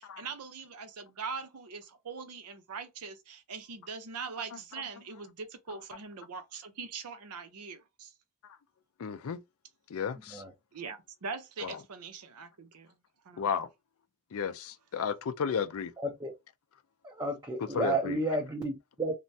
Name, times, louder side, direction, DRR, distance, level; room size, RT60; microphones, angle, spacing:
voice 1, 0.0-8.1 10.7-12.9 13.2-13.5, right 5 dB, 80° right, 0.6 m, -42 dB
voice 2, 9.0-9.4 9.9-10.4 11.6-11.8 13.4-13.7 14.3-15.9 17.7-18.2, left 6 dB, 65° left, 0.4 m, -33 dB
voice 3, 16.0-16.3 17.0-19.1, right 2 dB, 15° right, 0.5 m, -32 dB
3.2 x 2.1 x 2.6 m
head